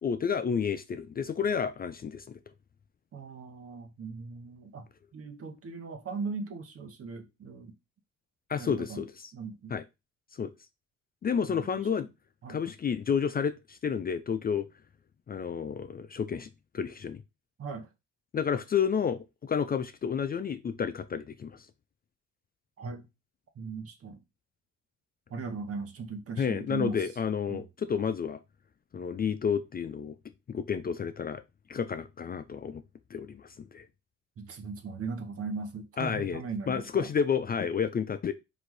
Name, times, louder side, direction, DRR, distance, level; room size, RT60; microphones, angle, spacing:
voice 1, 0.0-2.4 8.5-9.1 9.7-9.8 10.3-10.5 11.2-12.1 12.5-14.7 15.3-17.2 18.3-21.7 26.4-28.4 28.9-30.1 30.5-31.4 31.7-32.8 33.1-33.9 36.0-36.4 36.7-38.3, left 7 dB, 30° left, 0.4 m, -30 dB
voice 2, 3.1-4.9 5.1-7.7 8.6-9.0 9.3-9.8 11.4-11.8 12.4-12.6 17.6-17.9 22.8-23.1 23.5-24.2 25.3-27.1 27.5-27.7 34.4-37.1, right 4 dB, 50° right, 1.0 m, -38 dB
4.0 x 2.6 x 4.6 m
cardioid pair, 90°, 30 cm